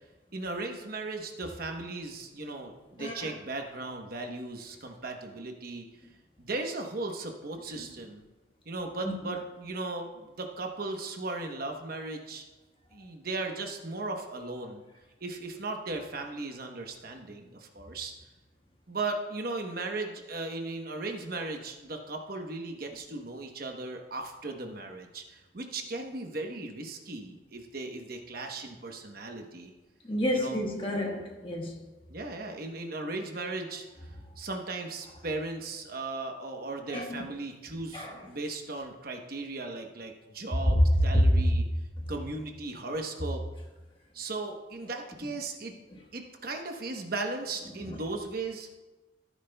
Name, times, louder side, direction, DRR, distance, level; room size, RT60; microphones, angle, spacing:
voice 1, 0.3-5.9 6.4-8.2 8.7-12.4 12.9-14.8 15.2-18.1 18.9-29.7 30.3-30.6 32.1-33.9 34.4-41.6 42.1-43.4 44.1-45.7 46.1-48.7, right 2 dB, 50° right, 1.0 m, -37 dB
voice 2, 3.0-3.3 9.0-9.1 30.1-31.8 36.9-37.3 37.9-38.3 40.7-41.4 45.9-46.0 47.9-48.0, equal, 25° left, 1.3 m, -27 dB
14.5 x 9.3 x 2.3 m
head